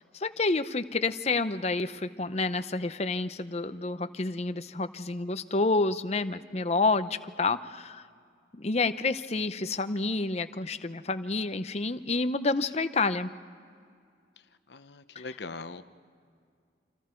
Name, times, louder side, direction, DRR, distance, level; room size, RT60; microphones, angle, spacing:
voice 1, 0.1-8.0 8.5-13.3 15.2-15.3, left 3 dB, 35° left, 11 dB, 0.7 m, -29 dB
voice 2, 14.7-15.8, left 3 dB, 70° left, 10 dB, 0.9 m, -41 dB
29.0 x 26.5 x 4.5 m, 2.2 s
head